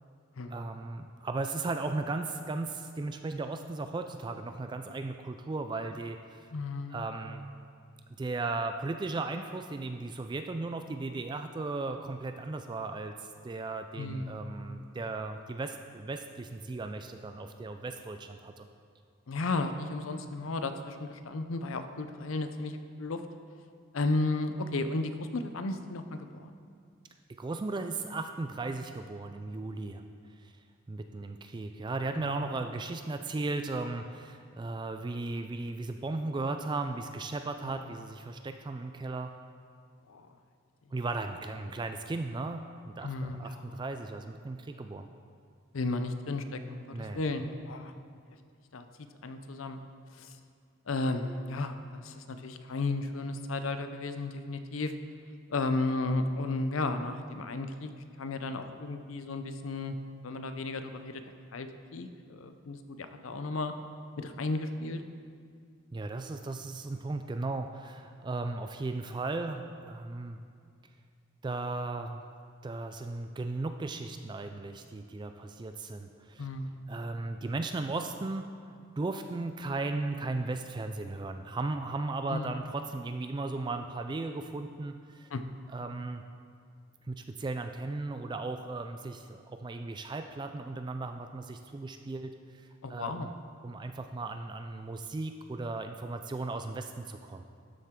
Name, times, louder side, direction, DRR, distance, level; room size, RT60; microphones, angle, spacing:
voice 1, 0.5-6.5 6.9-7.4 8.2-18.7 27.4-30.0 30.4-30.5 30.9-39.3 40.9-45.1 46.9-47.2 65.9-70.4 71.4-72.2 72.6-76.5 76.9-78.5 79.0-85.3 85.7-86.2 87.1-93.4 93.6-97.4, right 3 dB, 20° right, 7 dB, 0.3 m, -36 dB
voice 2, 6.5-7.0 14.0-14.5 19.3-23.2 23.9-26.5 32.2-32.5 37.9-38.0 40.1-40.3 43.0-43.7 45.7-47.9 48.7-48.8 49.2-49.8 50.2-50.3 50.9-54.9 55.5-57.9 58.2-60.0 60.2-61.2 61.5-63.7 64.2-65.0 76.4-76.8 82.3-82.5 85.3-85.4 92.8-93.3, left 2 dB, 90° left, 8 dB, 0.6 m, -34 dB
12.5 x 7.5 x 3.7 m, 2.2 s
head